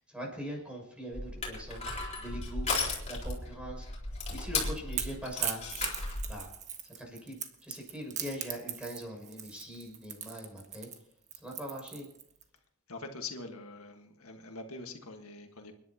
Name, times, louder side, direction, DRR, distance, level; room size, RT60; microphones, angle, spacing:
voice 1, 0.1-1.9 2.2-2.7 3.1-3.9 4.3-5.6 6.3-6.5 7.0-7.4 7.6-10.9 11.4-12.1, equal, 5° right, 0 dB, 6.5 m, -41 dB
Crushing, 1.1-6.3, left 3 dB, 35° left, 4.2 m, -35 dB
Crackle / Crack, 4.2-12.4, right 8 dB, 35° right, 1.4 m, -39 dB
voice 2, 12.9-15.7, left 3 dB, 85° left, 4 dB, 1.6 m, -44 dB
29.5 x 11.0 x 2.9 m, 0.72 s
head